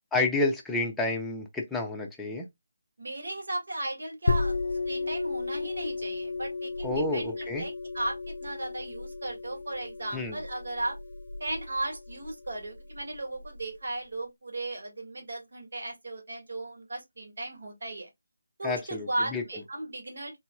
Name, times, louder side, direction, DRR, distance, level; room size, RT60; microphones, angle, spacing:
voice 1, 0.1-2.5 6.8-7.6 10.1-10.4 18.6-19.4, left 2 dB, 5° left, 0.6 m, -29 dB
voice 2, 3.0-4.5 4.9-11.0 11.4-18.1 18.6-20.4, right 2 dB, 70° right, 1.8 m, -36 dB
sound 1, 4.3-13.6, left 3 dB, 65° left, 0.5 m, -34 dB
3.9 x 2.9 x 2.3 m
figure-of-eight pair, 165°, 0 cm